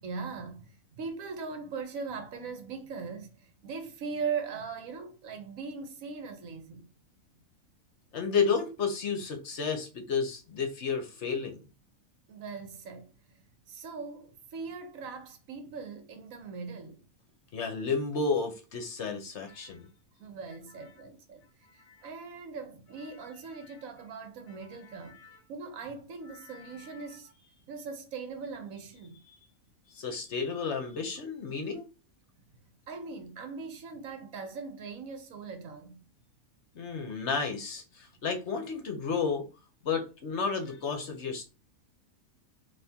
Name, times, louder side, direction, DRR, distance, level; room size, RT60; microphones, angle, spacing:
voice 1, 0.0-0.7 1.0-3.3 3.6-6.8 12.3-13.1 13.7-17.0 20.2-21.4 22.0-25.2 25.5-27.3 27.7-29.2 32.9-36.0, right 5 dB, 70° right, 1.2 m, -40 dB
voice 2, 8.1-11.6 17.5-19.9 21.9-22.0 23.7-23.8 24.6-25.4 26.3-27.1 29.9-31.9 36.7-39.5 39.8-41.4, left 5 dB, 60° left, 1.0 m, -32 dB
4.2 x 2.8 x 3.5 m
omnidirectional pair, 1.5 m